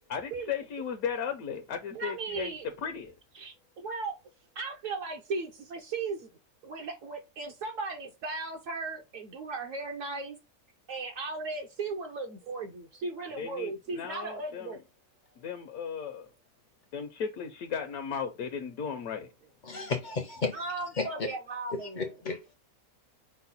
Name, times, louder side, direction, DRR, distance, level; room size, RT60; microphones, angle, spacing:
voice 1, 0.1-3.1 13.4-14.8 15.4-16.3 16.9-19.3, left 7 dB, 75° left, 1.1 m, -36 dB
voice 2, 1.9-2.7 3.3-4.1 4.6-6.3 6.6-10.4 10.9-14.8 20.5-22.1, right 3 dB, 65° right, 1.0 m, -36 dB
voice 3, 19.6-20.6 20.9-21.1 21.7-22.5, left 4 dB, 50° left, 0.5 m, -33 dB
5.5 x 2.1 x 4.0 m
omnidirectional pair, 1.6 m